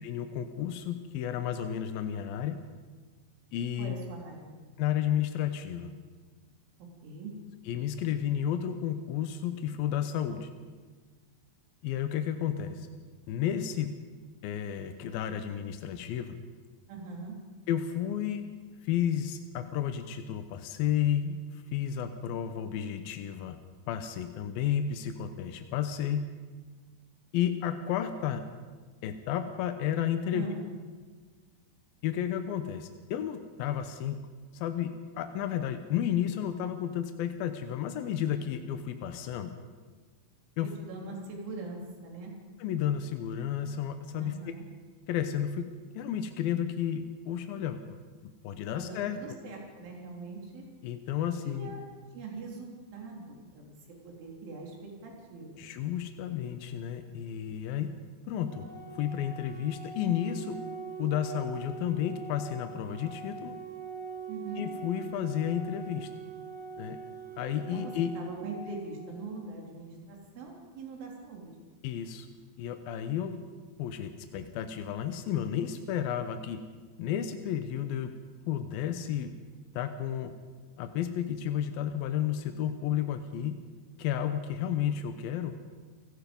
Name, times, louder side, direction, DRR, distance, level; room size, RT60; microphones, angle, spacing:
voice 1, 0.0-2.6 3.5-3.9 4.8-5.9 7.7-10.5 11.8-12.9 13.3-13.9 14.4-16.4 17.7-18.5 18.8-23.6 23.9-26.3 27.3-28.4 29.0-30.5 32.0-34.2 34.5-39.6 40.6-40.7 42.6-44.5 45.1-45.7 45.9-48.0 48.2-49.2 50.8-51.8 55.6-57.9 58.3-58.7 59.0-60.6 61.0-63.6 64.6-66.1 66.8-67.0 67.4-68.1 71.8-72.3 72.6-73.4 73.8-76.6 77.0-78.1 78.5-79.3 79.7-80.3 80.8-83.6 84.0-85.6, left 10 dB, 80° left, 8 dB, 2.1 m, -32 dB
voice 2, 3.8-4.5 6.8-7.3 16.9-17.4 30.3-30.7 40.8-42.3 44.2-44.7 48.7-50.6 51.5-51.8 52.1-53.7 54.0-55.6 64.3-64.7 67.7-71.6, right 3 dB, 75° right, -1 dB, 6.2 m, -42 dB
Organ, 58.5-69.5, right 5 dB, 45° right, 1.1 m, -43 dB
29.0 x 18.0 x 5.4 m, 1.4 s
omnidirectional pair, 5.5 m